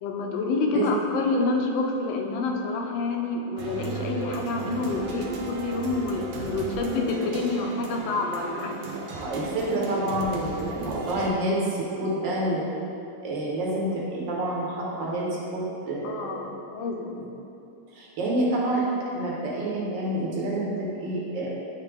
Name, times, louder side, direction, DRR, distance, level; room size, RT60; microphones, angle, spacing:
voice 1, 0.0-8.8 16.0-17.2, left 3 dB, 70° left, 2 dB, 1.3 m, -28 dB
sound 1, 3.6-11.3, right 3 dB, 75° right, 1.4 m, -36 dB
voice 2, 9.1-12.6 13.2-16.5 17.9-18.9 19.1-21.5, right 1 dB, 60° right, -4 dB, 1.7 m, -28 dB
9.0 x 3.3 x 3.4 m, 2.8 s
omnidirectional pair, 2.4 m